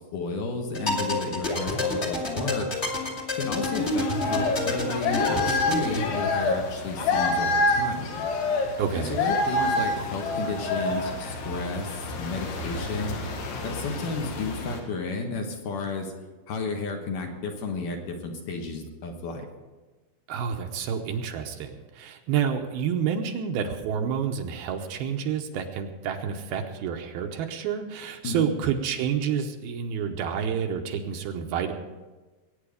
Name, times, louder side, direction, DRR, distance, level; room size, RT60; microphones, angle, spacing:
voice 1, 0.0-2.7 3.3-8.1 9.0-13.2 13.6-16.1 16.5-19.5 28.2-28.5, left 3 dB, 60° left, 2 dB, 2.6 m, -32 dB
sound 1, 0.7-6.1, left 1 dB, 25° left, 1.5 m, -29 dB
sound 2, 3.6-14.8, left 2 dB, 80° left, 3.8 m, -28 dB
voice 2, 8.8-9.2 20.3-31.7, right 7 dB, 75° right, 4 dB, 2.6 m, -29 dB
21.0 x 9.4 x 5.1 m, 1.2 s
omnidirectional pair, 4.7 m